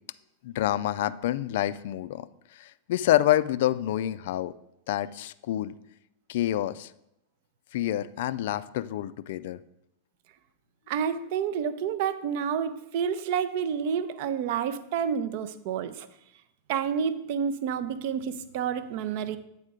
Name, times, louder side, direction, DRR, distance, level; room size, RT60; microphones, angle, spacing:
voice 1, 0.4-2.3 2.5-4.5 4.9-5.7 6.3-6.9 7.7-9.6, left 13 dB, 55° left, 14 dB, 0.3 m, -27 dB
voice 2, 10.9-16.1 16.7-19.4, right 7 dB, 50° right, 13 dB, 0.5 m, -29 dB
8.4 x 4.3 x 4.9 m, 0.81 s
figure-of-eight pair, 90°, 0 cm